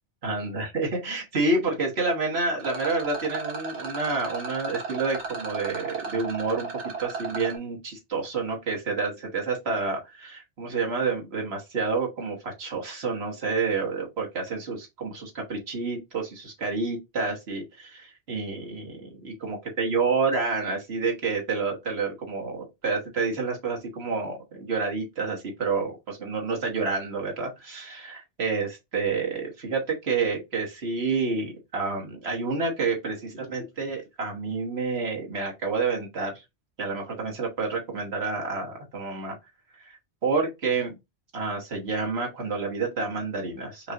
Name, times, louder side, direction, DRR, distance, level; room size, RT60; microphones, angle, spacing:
voice 1, 0.2-36.4 36.8-39.4 39.8-41.0 41.3-43.9, right 4 dB, 65° right, 1.5 m, -29 dB
Rattle, 2.6-7.6, right 5 dB, 85° right, 1.5 m, -35 dB
5.4 x 2.5 x 2.9 m
omnidirectional pair, 1.1 m